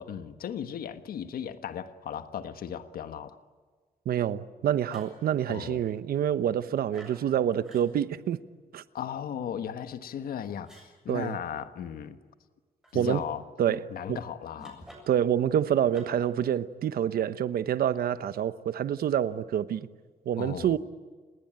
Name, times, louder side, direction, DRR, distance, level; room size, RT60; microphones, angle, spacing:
voice 1, 0.0-3.4 5.5-5.8 8.9-12.2 12.9-13.4 13.9-14.9 20.4-20.8, left 9 dB, 80° left, 1.4 m, -36 dB
voice 2, 4.0-8.4 8.7-8.8 11.1-11.4 12.9-13.2 13.6-13.8 15.1-19.9 20.2-20.8, right 10 dB, 85° right, 1.1 m, -27 dB
sound 1, 4.9-5.2 6.9-7.2 7.6-7.9 10.6-10.9 12.8-13.1 14.6-15.2 15.9-16.3, right 1 dB, 5° right, 7.5 m, -50 dB
29.5 x 20.0 x 9.0 m
wide cardioid pair, 175°, 15 cm